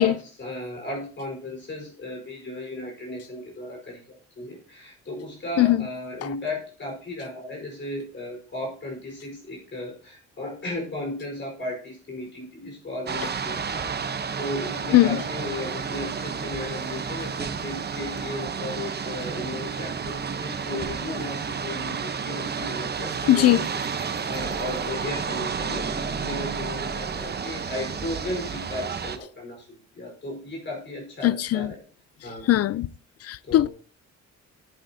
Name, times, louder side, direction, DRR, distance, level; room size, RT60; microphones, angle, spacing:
voice 1, 0.0-23.6 23.9-31.8 32.2-32.5 33.4-33.7, left 1 dB, 40° left, 4.5 m, -35 dB
sound 1, 13.1-29.2, right 6 dB, 35° right, 1.0 m, -31 dB
voice 2, 23.3-23.6 31.2-31.7 32.5-32.9 33.2-33.7, left 14 dB, 55° left, 0.4 m, -19 dB
14.5 x 8.2 x 2.8 m
cardioid pair, 90°, 30 cm